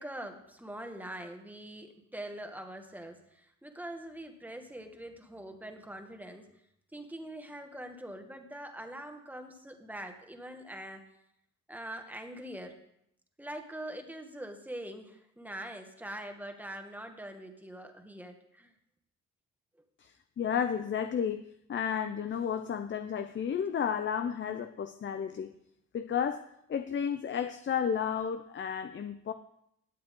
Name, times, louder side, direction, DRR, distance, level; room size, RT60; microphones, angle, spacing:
voice 1, 0.0-6.5 6.9-11.0 11.7-12.8 13.4-18.7, right 1 dB, 5° right, 5 dB, 1.8 m, -43 dB
voice 2, 20.4-21.4 21.7-25.5 25.9-26.4 26.7-29.3, left 7 dB, 40° left, 9 dB, 0.7 m, -32 dB
17.0 x 8.6 x 3.8 m, 0.78 s
cardioid pair, 90°, 30 cm